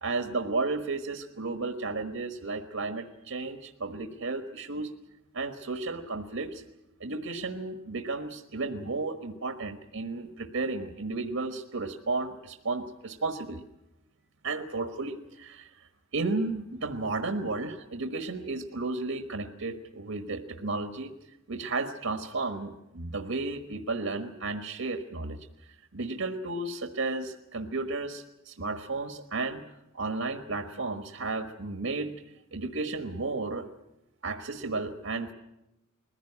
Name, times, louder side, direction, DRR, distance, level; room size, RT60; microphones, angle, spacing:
voice 1, 0.0-4.9 5.3-6.6 7.0-13.6 14.4-21.1 21.5-25.4 25.9-29.6 29.9-32.1 32.5-33.7 34.2-35.3, right 3 dB, 85° right, 6 dB, 1.4 m, -33 dB
21.0 x 15.5 x 9.9 m, 0.91 s
head